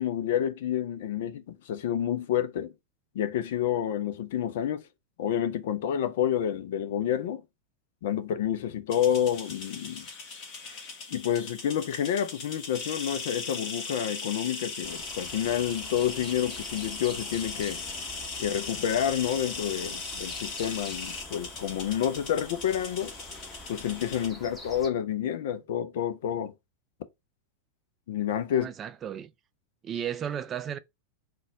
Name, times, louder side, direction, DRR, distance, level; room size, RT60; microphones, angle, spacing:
voice 1, 0.0-2.7 3.1-4.9 5.2-7.4 8.0-10.1 11.1-17.8 18.4-23.1 23.7-26.5 28.1-28.7, left 10 dB, 55° left, 0.5 m, -29 dB
sound 1, 8.9-24.3, left 4 dB, 40° left, 1.4 m, -39 dB
sound 2, 14.8-24.9, equal, 10° left, 1.0 m, -47 dB
voice 2, 28.5-29.3 29.8-30.8, right 9 dB, 25° right, 0.4 m, -34 dB
3.9 x 2.3 x 3.7 m
figure-of-eight pair, 90°, 0 cm